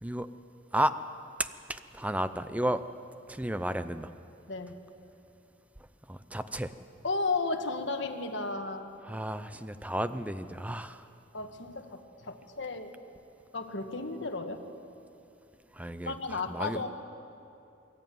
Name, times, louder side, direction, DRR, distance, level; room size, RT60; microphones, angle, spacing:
voice 1, 1.4-2.9 3.3-4.1 6.1-6.7 9.0-11.1 15.7-16.8, right 1 dB, 5° right, 11 dB, 0.6 m, -33 dB
voice 2, 7.0-8.9 11.3-13.0 13.5-14.6 16.0-16.9, left 3 dB, 65° left, 4 dB, 1.5 m, -34 dB
24.0 x 13.0 x 9.3 m, 2.7 s
head